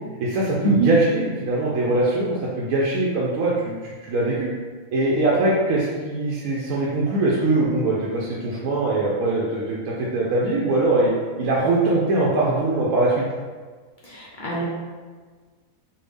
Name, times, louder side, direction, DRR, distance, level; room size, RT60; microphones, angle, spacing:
voice 1, 0.2-4.5 4.9-11.1 11.4-13.2, right 2 dB, 75° right, -5 dB, 1.0 m, -22 dB
voice 2, 14.0-14.6, right 3 dB, 80° left, -6 dB, 0.4 m, -23 dB
3.4 x 2.3 x 3.3 m, 1.5 s
omnidirectional pair, 1.5 m